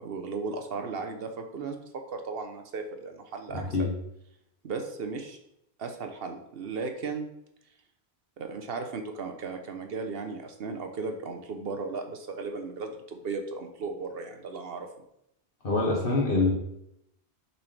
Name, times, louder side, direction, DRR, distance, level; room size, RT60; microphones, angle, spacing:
voice 1, 0.0-1.8 2.1-3.9 4.6-5.4 5.8-7.3 8.4-14.9, right 4 dB, 60° right, 5 dB, 0.9 m, -36 dB
voice 2, 15.6-16.5, left 3 dB, 55° left, -3 dB, 1.4 m, -24 dB
7.0 x 4.2 x 3.3 m, 0.79 s
omnidirectional pair, 1.1 m